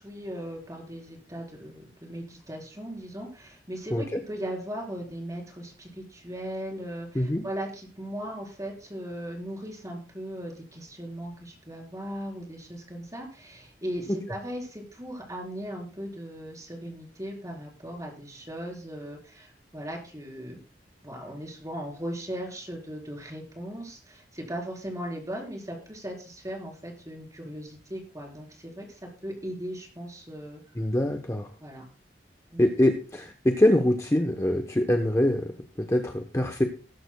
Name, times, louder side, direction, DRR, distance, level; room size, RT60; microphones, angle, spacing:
voice 1, 0.0-20.6 21.0-30.6 31.6-31.8 32.5-32.7, equal, 20° right, 0 dB, 4.2 m, -38 dB
voice 2, 30.7-31.5 32.6-36.6, left 1 dB, 15° left, 3 dB, 0.9 m, -24 dB
20.5 x 11.0 x 2.3 m, 0.36 s
head